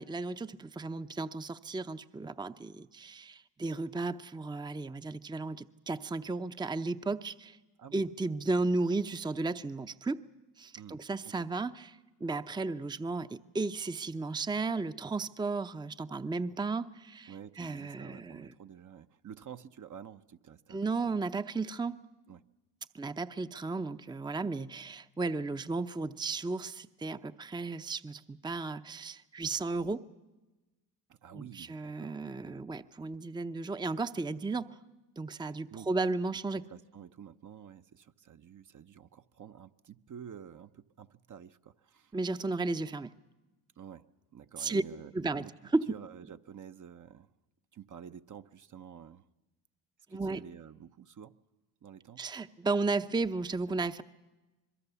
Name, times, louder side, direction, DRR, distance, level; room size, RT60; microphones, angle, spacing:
voice 1, 0.0-7.6 7.9-10.2 10.6-11.9 12.2-18.5 20.7-22.0 22.9-30.0 31.3-34.8 35.2-36.6 42.1-43.1 44.6-44.8 45.1-45.4 45.7-45.9 50.1-50.4 52.2-54.0, right 3 dB, 10° right, 11 dB, 0.7 m, -34 dB
voice 2, 7.8-8.1 10.8-11.3 17.3-20.8 21.1-21.2 22.3-22.4 31.1-32.6 35.3-35.9 36.7-42.1 43.8-44.1 44.3-45.5 45.9-47.3 47.7-49.2 50.1-51.4 51.8-52.2, right 8 dB, 40° right, 9 dB, 0.9 m, -50 dB
25.0 x 22.0 x 7.0 m, 1.1 s
supercardioid pair, 60°, 45 cm